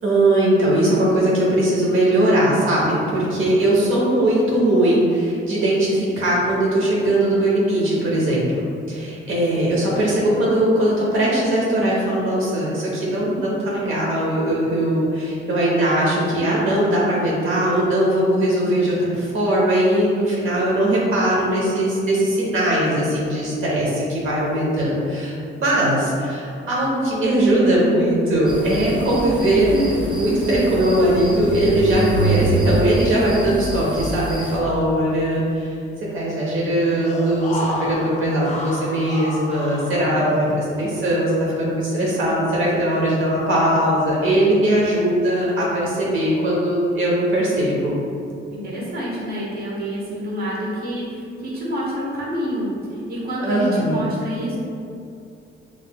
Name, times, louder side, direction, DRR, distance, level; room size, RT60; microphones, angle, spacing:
voice 1, 0.0-8.6 8.9-35.7 36.1-48.0 53.4-54.1, right 1 dB, 75° right, -5 dB, 0.9 m, -20 dB
sound 1, 28.5-34.6, right 1 dB, 20° right, 0.6 m, -26 dB
sound 2, 37.0-40.7 41.1-41.2, left 1 dB, 35° left, 0.4 m, -31 dB
voice 2, 48.5-54.6, equal, 50° right, -5 dB, 1.0 m, -28 dB
5.7 x 3.1 x 2.2 m, 2.5 s
wide cardioid pair, 155°, 21 cm